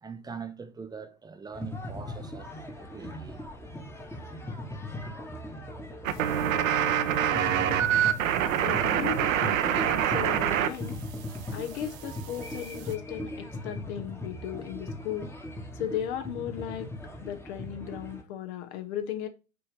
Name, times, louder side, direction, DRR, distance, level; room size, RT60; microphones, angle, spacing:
voice 1, 0.0-2.5 2.7-3.4, right 5 dB, 10° right, 0.7 m, -42 dB
sound 1, 1.5-18.2, left 1 dB, 5° left, 1.2 m, -39 dB
sound 2, 6.0-10.7 11.0-12.9, right 10 dB, 70° right, 0.9 m, -26 dB
voice 2, 8.6-11.0 11.5-15.3 15.7-16.9 17.2-19.3, left 10 dB, 55° left, 1.1 m, -36 dB
8.4 x 2.9 x 5.0 m
hypercardioid pair, 100°, 41 cm